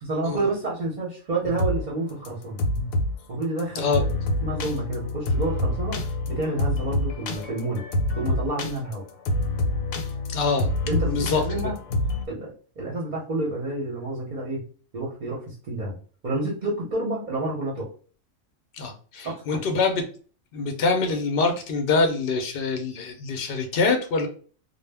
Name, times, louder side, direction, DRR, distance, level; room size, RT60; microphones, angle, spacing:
voice 1, 0.0-2.6 3.3-4.1 4.4-7.8 8.2-9.0 10.8-11.7 12.3-14.6 14.9-16.0 16.2-17.9 19.2-19.8, right 2 dB, 45° right, -4 dB, 0.7 m, -29 dB
sound 1, 1.4-1.8 2.1-3.1 3.6-3.7 3.9-12.3, left 1 dB, 85° left, 1.0 m, -27 dB
voice 2, 10.3-10.7 11.1-11.4 18.7-20.0 20.5-24.3, left 4 dB, 60° left, 4 dB, 0.6 m, -24 dB
2.1 x 2.1 x 3.3 m, 0.40 s
omnidirectional pair, 1.4 m